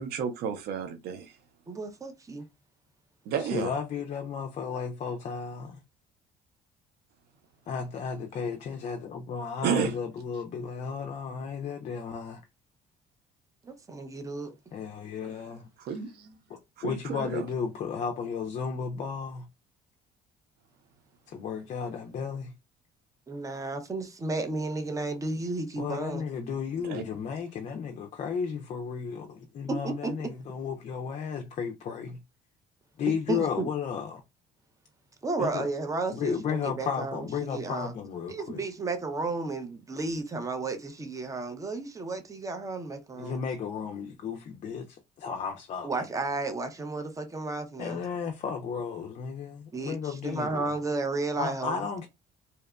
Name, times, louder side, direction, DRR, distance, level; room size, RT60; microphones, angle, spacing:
voice 1, 0.0-1.4 3.3-3.7 9.6-9.9 15.8-16.4 16.8-17.4 26.8-27.0, right 7 dB, 70° right, 0.5 m, -31 dB
voice 2, 1.7-2.4 13.6-14.6 23.3-26.2 29.7-30.1 33.3-33.7 35.2-37.9 38.3-43.4 45.8-48.0 49.7-52.1, right 3 dB, 20° right, 0.5 m, -33 dB
voice 3, 3.4-5.8 7.7-12.4 14.7-15.7 16.5-19.5 21.3-22.5 25.8-32.2 33.0-34.2 35.4-35.7 36.1-38.7 43.2-45.9 47.8-50.7 51.3-52.1, left 6 dB, 45° left, 0.4 m, -34 dB
2.8 x 2.1 x 2.3 m
cardioid pair, 110°, 17 cm